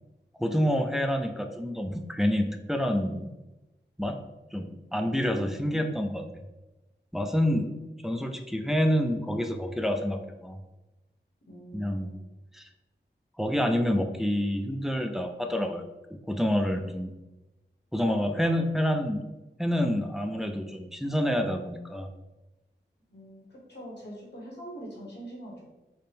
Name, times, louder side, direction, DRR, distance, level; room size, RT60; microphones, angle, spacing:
voice 1, 0.4-3.3 4.0-4.2 4.5-6.3 7.1-7.7 8.0-10.6 11.7-12.1 12.5-12.7 13.4-15.8 16.3-17.1 17.9-19.2 19.6-22.1, equal, ahead, 5 dB, 0.3 m, -28 dB
voice 2, 5.0-6.1 11.5-12.3 23.1-25.6, right 1 dB, 65° left, -3 dB, 1.0 m, -44 dB
4.3 x 2.0 x 3.3 m, 1.0 s
wide cardioid pair, 70°, 19 cm